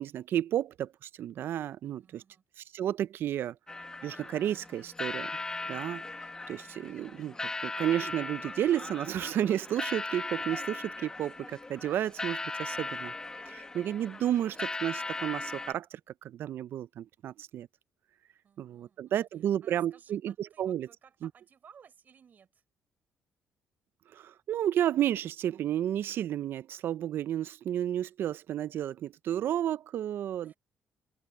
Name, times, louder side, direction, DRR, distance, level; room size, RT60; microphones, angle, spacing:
voice 1, 0.0-2.2 2.6-3.6 4.0-5.3 5.7-6.0 6.5-7.4 7.6-13.1 13.5-17.7 18.6-20.9 21.2-21.3 24.1-30.5, right 11 dB, 65° right, 0.4 m, -32 dB
voice 2, 1.8-2.4 18.4-22.6 30.4-30.6, right 7 dB, 45° right, 6.4 m, -59 dB
sound 1, 3.7-15.7, left 3 dB, 15° left, 1.0 m, -38 dB
open air
cardioid pair, 110°, 4 cm